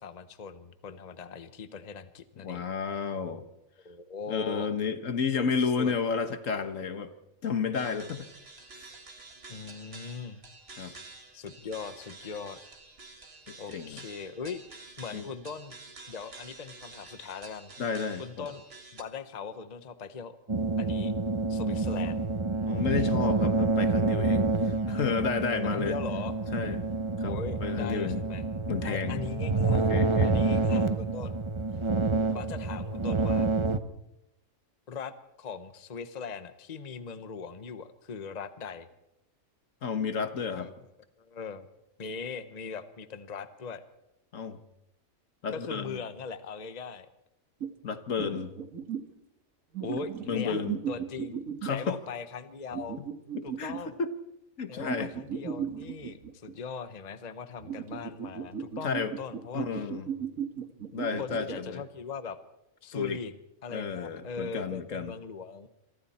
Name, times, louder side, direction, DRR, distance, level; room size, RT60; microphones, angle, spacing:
voice 1, 0.0-2.7 3.8-4.7 5.4-5.5 5.8-5.9 9.5-10.4 10.7-11.0 11.3-12.6 13.6-15.7 16.1-17.7 18.2-18.6 18.9-20.4 20.8-21.1 21.5-22.3 25.6-26.3 27.2-28.4 28.8-29.9 30.2-31.4 32.3-33.5 34.9-38.9 40.6-40.7 41.2-41.7 42.0-43.8 45.5-47.1 48.2-48.5 49.8-50.6 50.9-53.0 53.4-54.0 54.7-59.9 61.2-62.4 62.8-63.3 63.6-65.7, left 5 dB, 35° left, 11 dB, 1.0 m, -40 dB
voice 2, 2.4-3.4 4.3-7.1 7.4-8.3 8.8-8.9 10.8-10.9 13.5-14.1 15.1-15.3 17.8-18.5 22.7-26.0 26.5-26.9 27.2-27.3 27.6-28.2 28.7-29.2 29.7-30.3 39.8-40.7 44.3-44.6 45.4-46.0 47.8-48.5 50.3-50.8 51.6-52.0 53.0-53.1 53.4-54.1 54.6-55.1 58.8-59.1 59.5-60.1 60.9-61.8 62.9-63.2 63.7-65.1, left 6 dB, 70° left, 10 dB, 1.6 m, -32 dB
sound 1, 7.7-19.0, right 3 dB, 45° right, 2.1 m, -49 dB
sound 2, 20.5-33.8, right 3 dB, 25° right, 0.8 m, -28 dB
sound 3, 47.6-47.7 48.2-49.1 49.7-51.9 52.7-53.8 54.8-56.5 57.6-61.6, right 8 dB, 80° right, 2.0 m, -36 dB
27.0 x 24.0 x 4.3 m, 0.87 s
omnidirectional pair, 1.4 m